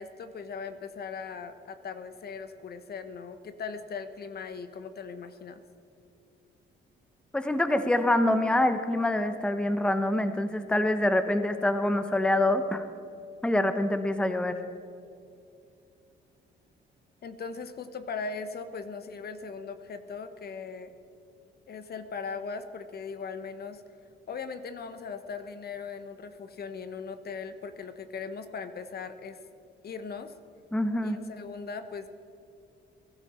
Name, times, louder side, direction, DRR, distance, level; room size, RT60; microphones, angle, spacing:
voice 1, 0.0-5.6 17.2-20.9 21.7-23.8 24.3-29.4 29.8-30.3 31.0-32.1, left 5 dB, 50° left, 10 dB, 1.0 m, -39 dB
voice 2, 7.3-12.9 13.4-14.6 30.7-31.2, left 1 dB, 5° left, 9 dB, 0.9 m, -25 dB
21.0 x 12.0 x 4.3 m, 2.6 s
cardioid pair, 90°, 20 cm